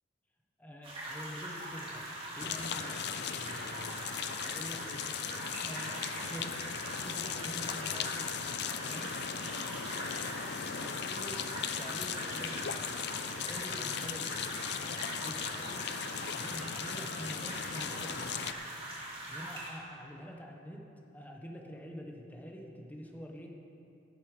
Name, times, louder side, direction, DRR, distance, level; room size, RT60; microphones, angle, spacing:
voice 1, 0.6-4.0 4.4-5.1 5.6-6.0 6.2-8.3 8.8-9.1 10.8-11.4 11.8-14.8 15.1-15.8 16.3-18.5 19.2-20.8 21.1-23.5, equal, 10° left, 0 dB, 1.2 m, -46 dB
sound 1, 0.8-19.7, right 1 dB, 30° right, 2.8 m, -42 dB
sound 2, 2.4-18.5, left 8 dB, 60° left, 0.5 m, -38 dB
17.0 x 8.4 x 5.2 m, 2.6 s
head